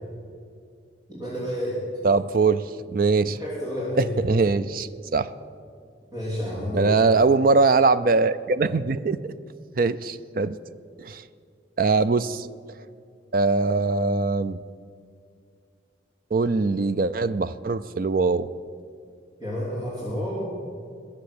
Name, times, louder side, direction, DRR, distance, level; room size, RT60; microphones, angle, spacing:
voice 1, 1.1-1.8 3.3-4.1 6.1-6.9 19.4-20.5, equal, 25° right, -7 dB, 3.1 m, -30 dB
voice 2, 2.0-3.4 4.0-5.3 6.7-9.3 9.8-10.6 11.0-11.2 11.8-12.5 13.3-14.6 16.3-18.5, right 4 dB, 50° right, 13 dB, 0.4 m, -22 dB
21.0 x 7.2 x 8.5 m, 2.2 s
head